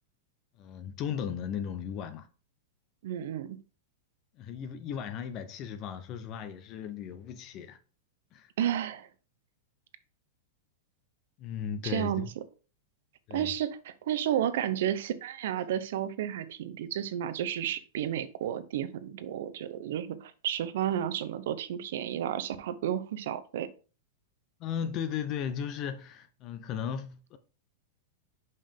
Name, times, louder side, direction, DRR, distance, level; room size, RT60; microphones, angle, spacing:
voice 1, 0.6-2.3 4.4-7.8 8.3-8.5 11.4-12.3 13.3-13.5 24.6-27.4, left 8 dB, 35° left, 0.6 m, -36 dB
voice 2, 3.0-3.6 8.6-9.1 11.8-12.2 13.3-23.7, right 10 dB, 70° right, 0.7 m, -32 dB
5.5 x 5.3 x 3.5 m
supercardioid pair, 150°, 0 cm